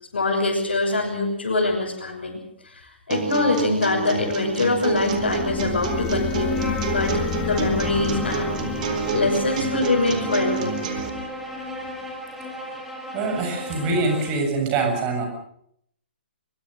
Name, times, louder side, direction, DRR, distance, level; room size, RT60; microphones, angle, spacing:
voice 1, 0.1-6.6 6.9-8.5 9.1-10.8, left 3 dB, 65° left, -4 dB, 6.7 m, -24 dB
sound 1, 3.1-11.1, right 5 dB, 45° right, 4.2 m, -28 dB
sound 2, 4.8-11.5, left 11 dB, 15° left, 1.2 m, -33 dB
Bowed string instrument, 6.5-14.4, left 1 dB, 5° right, 6.3 m, -34 dB
voice 2, 13.1-15.3, right 3 dB, 30° right, 4 dB, 7.2 m, -24 dB
23.5 x 23.0 x 6.7 m, 0.71 s
figure-of-eight pair, 125°, 6 cm